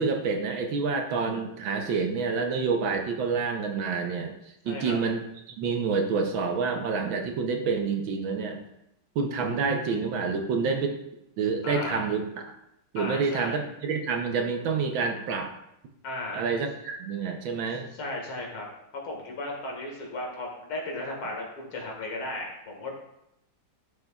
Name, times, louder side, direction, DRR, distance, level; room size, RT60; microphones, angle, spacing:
voice 1, 0.0-4.3 4.6-8.6 9.1-11.0 11.4-12.2 12.9-15.5 16.3-17.9, right 5 dB, 70° right, 4 dB, 1.5 m, -28 dB
voice 2, 4.7-5.0 11.6-12.0 13.0-13.7 16.0-16.4 17.9-18.7 19.0-22.9, left 2 dB, 75° left, 0 dB, 2.6 m, -35 dB
11.5 x 6.9 x 2.3 m, 0.81 s
omnidirectional pair, 2.4 m